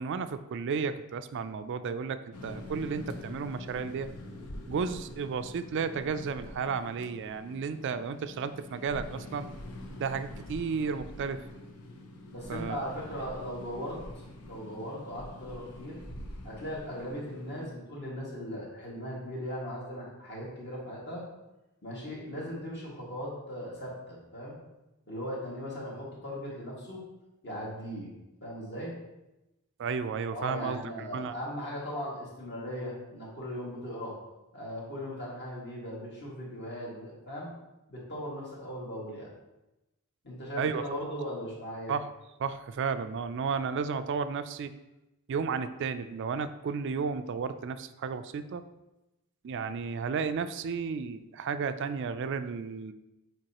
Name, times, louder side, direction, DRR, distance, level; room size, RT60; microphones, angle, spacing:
voice 1, 0.0-4.1 4.7-9.5 10.0-11.4 12.5-12.9 29.8-31.3 40.6-40.8 41.9-42.1 42.4-44.7 45.3-48.6 49.4-52.9, right 5 dB, 55° right, 10 dB, 0.3 m, -33 dB
sound 1, 2.3-17.7, left 1 dB, 80° left, 0.8 m, -45 dB
voice 2, 12.3-14.0 14.4-16.0 16.4-21.2 21.8-24.6 25.1-27.0 27.4-28.1 28.4-28.9 30.3-34.1 34.5-37.5 37.9-39.3 40.2-41.9, equal, 50° left, -5 dB, 2.0 m, -38 dB
7.6 x 4.6 x 2.9 m, 0.96 s
head